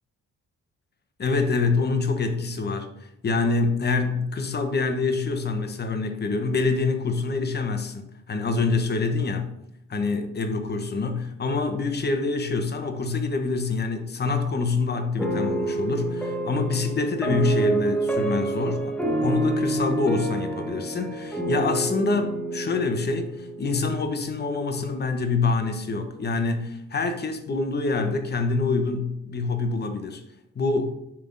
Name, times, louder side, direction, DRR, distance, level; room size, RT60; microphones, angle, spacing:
voice 1, 1.2-9.5 9.9-18.9 19.2-30.2 30.5-30.9, left 3 dB, 35° left, 6 dB, 1.1 m, -26 dB
sound 1, 15.2-24.4, right 2 dB, 5° left, 1.2 m, -28 dB
10.0 x 3.7 x 3.9 m, 0.80 s
cardioid pair, 90°, 30 cm